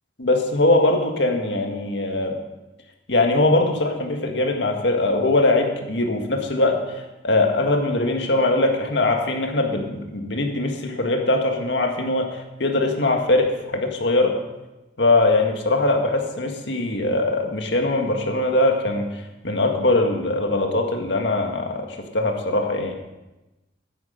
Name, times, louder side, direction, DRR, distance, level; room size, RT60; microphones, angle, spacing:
voice 1, 0.2-2.4 3.1-6.8 7.2-14.4 15.0-22.9, left 2 dB, 75° left, 3 dB, 1.8 m, -21 dB
13.0 x 10.0 x 5.2 m, 1.0 s
head